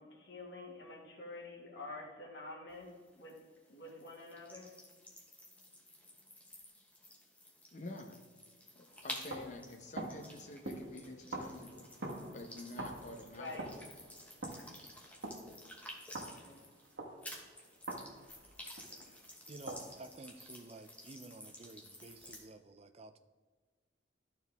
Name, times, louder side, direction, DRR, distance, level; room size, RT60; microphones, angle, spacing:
voice 1, 0.0-3.4 3.7-4.7 13.3-13.7 16.2-16.7, left 2 dB, 60° left, -2 dB, 1.9 m, -48 dB
sound 1, 2.7-16.9 17.2-22.4, left 1 dB, 10° left, 1.0 m, -52 dB
voice 2, 7.7-8.2 8.7-11.9 12.3-13.6, left 2 dB, 40° left, 4 dB, 0.8 m, -48 dB
sound 2, 8.9-19.2 19.7-20.4, right 2 dB, 70° right, 1.3 m, -47 dB
voice 3, 19.5-23.2, right 2 dB, 30° right, 10 dB, 0.4 m, -52 dB
12.5 x 4.5 x 3.5 m, 1.5 s
head